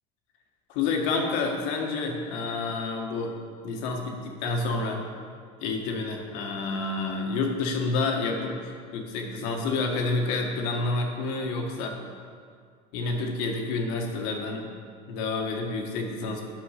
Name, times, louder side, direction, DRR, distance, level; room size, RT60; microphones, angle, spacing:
voice 1, 0.7-3.3 3.6-5.0 5.6-12.0 12.9-14.7 15.1-16.4, left 3 dB, 75° left, 2 dB, 1.6 m, -29 dB
9.5 x 6.3 x 6.6 m, 2.1 s
cardioid pair, 165°, 15 cm